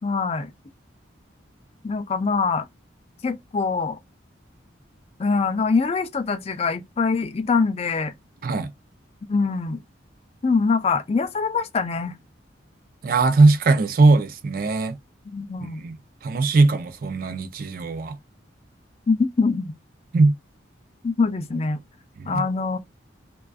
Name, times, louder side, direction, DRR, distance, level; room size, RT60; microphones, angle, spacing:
voice 1, 0.0-0.5 1.8-2.7 3.2-4.0 5.2-8.1 9.3-9.8 10.4-12.1 15.3-15.8 19.1-19.7 21.0-21.8 22.3-22.8, left 4 dB, 30° left, 0.3 m, -23 dB
voice 2, 13.0-15.0 15.8-16.0 16.2-18.2 20.1-20.3 22.2-22.4, right 3 dB, 45° right, 0.4 m, -19 dB
2.4 x 2.3 x 2.3 m
head